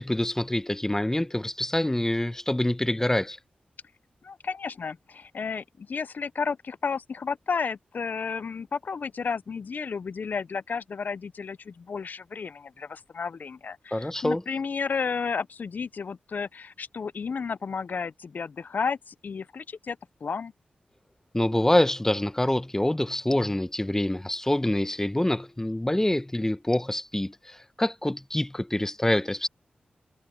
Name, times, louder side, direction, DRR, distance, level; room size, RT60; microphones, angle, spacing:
voice 1, 0.0-3.4 13.9-14.4 21.3-29.5, left 1 dB, 15° left, 0.8 m, -26 dB
voice 2, 4.2-20.5, left 5 dB, 65° left, 0.5 m, -32 dB
cardioid pair, 45°, 3 cm